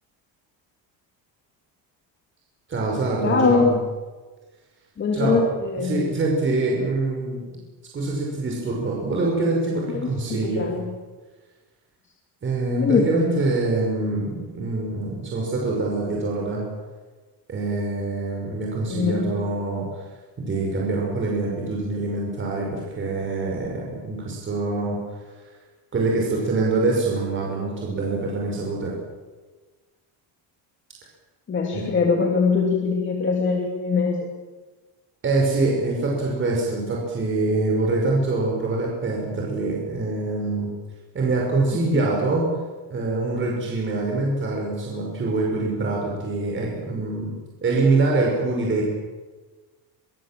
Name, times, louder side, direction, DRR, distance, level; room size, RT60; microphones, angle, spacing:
voice 1, 2.7-3.8 5.1-5.4 5.7-7.4 7.9-10.7 12.4-16.6 17.5-20.0 20.4-25.0 25.4-25.5 25.9-28.9 31.7-31.9 35.2-40.7 41.1-42.5 42.9-47.3 47.6-48.9, right 3 dB, 25° right, -2 dB, 5.6 m, -24 dB
voice 2, 3.2-3.7 5.0-6.0 9.9-10.9 12.8-13.4 18.9-19.3 31.5-34.3, left 4 dB, 25° left, 1 dB, 2.8 m, -22 dB
26.0 x 24.0 x 7.6 m, 1.3 s
cardioid pair, 175°, 44 cm